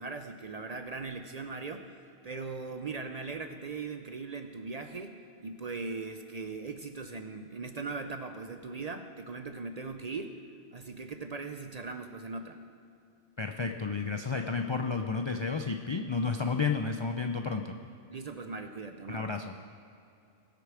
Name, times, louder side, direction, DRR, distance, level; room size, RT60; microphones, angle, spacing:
voice 1, 0.0-2.0 2.2-10.3 10.7-12.6 18.1-19.3, right 4 dB, 45° right, 7 dB, 0.5 m, -39 dB
voice 2, 13.4-17.7 19.1-19.5, left 4 dB, 50° left, 4 dB, 0.3 m, -31 dB
19.5 x 6.7 x 4.9 m, 2.7 s
omnidirectional pair, 1.2 m